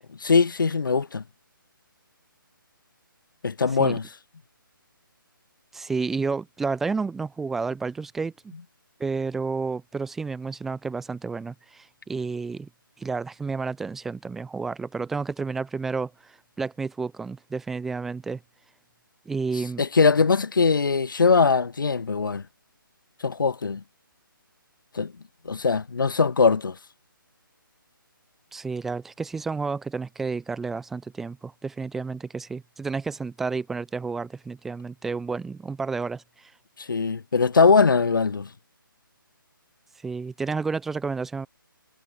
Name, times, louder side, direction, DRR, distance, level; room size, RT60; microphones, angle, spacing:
voice 1, 0.2-1.2 3.4-4.0 19.8-22.4 23.2-23.8 24.9-25.1 25.5-26.8 36.8-38.5, left 4 dB, 65° left, 5.4 m, -21 dB
voice 2, 5.7-8.3 9.0-12.7 13.0-18.4 19.3-19.8 28.5-36.5 40.0-41.5, right 4 dB, ahead, 0.8 m, -31 dB
hypercardioid pair, 175°, 12 cm